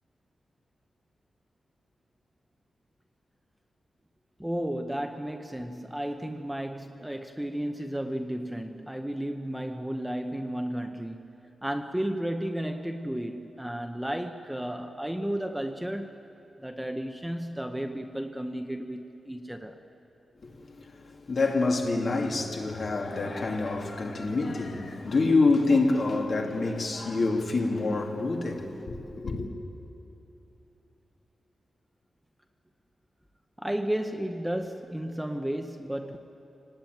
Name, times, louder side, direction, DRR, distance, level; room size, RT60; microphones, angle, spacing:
voice 1, 4.4-11.3 11.6-16.1 16.6-19.8 33.6-36.2, right 1 dB, 5° right, 0.8 m, -33 dB
voice 2, 20.4-29.5, left 3 dB, 45° left, 2.4 m, -27 dB
25.5 x 19.0 x 9.3 m
wide cardioid pair, 160°, 0 cm